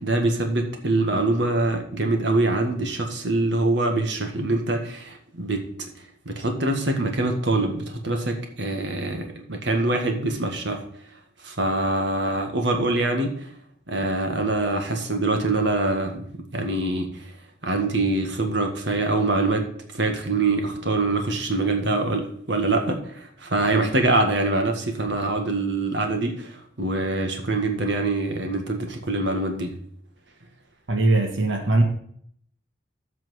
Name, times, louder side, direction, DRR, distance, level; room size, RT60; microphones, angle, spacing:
voice 1, 0.0-5.6 6.2-10.8 11.4-13.5 13.9-16.2 16.5-17.3 17.6-19.7 19.9-29.7, right 2 dB, 65° right, 4 dB, 1.7 m, -24 dB
voice 2, 30.9-31.8, right 2 dB, 80° right, 3 dB, 1.6 m, -20 dB
8.1 x 6.1 x 7.6 m, 0.64 s
head